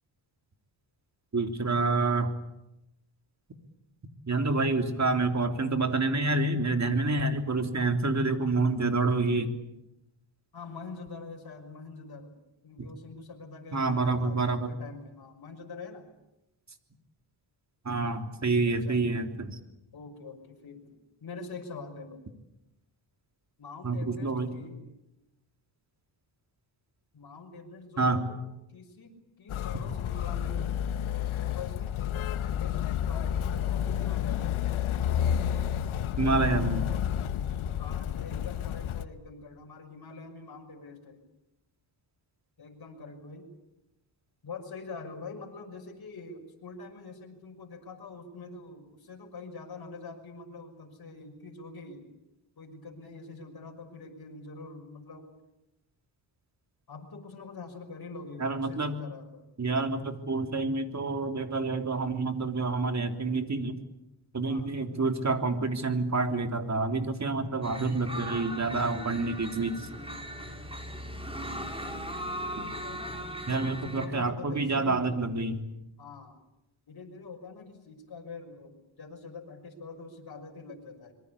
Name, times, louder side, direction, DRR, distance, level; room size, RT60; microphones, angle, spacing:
voice 1, 1.3-2.3 4.3-9.5 13.7-14.7 17.9-19.6 23.8-24.5 28.0-28.2 36.2-36.9 58.4-59.0 59.6-63.8 64.3-69.9 73.5-75.6, right 3 dB, 35° right, 6 dB, 3.4 m, -28 dB
voice 2, 10.5-12.3 12.6-16.1 18.7-19.0 19.9-21.0 21.2-22.2 23.6-24.9 27.1-28.4 28.7-30.8 31.3-32.0 32.4-34.6 36.4-36.7 37.6-41.2 42.6-43.5 44.4-52.1 52.6-55.2 56.9-59.4 64.5-64.7 72.5-75.2 76.0-76.4 76.9-81.1, left 4 dB, 50° left, 0 dB, 6.2 m, -44 dB
Motor vehicle (road), 29.5-39.1, left 10 dB, 80° left, 1.4 m, -30 dB
sound 1, 67.6-74.1, equal, 10° right, 6.2 m, -38 dB
26.0 x 23.0 x 8.5 m, 0.91 s
cardioid pair, 90°, 48 cm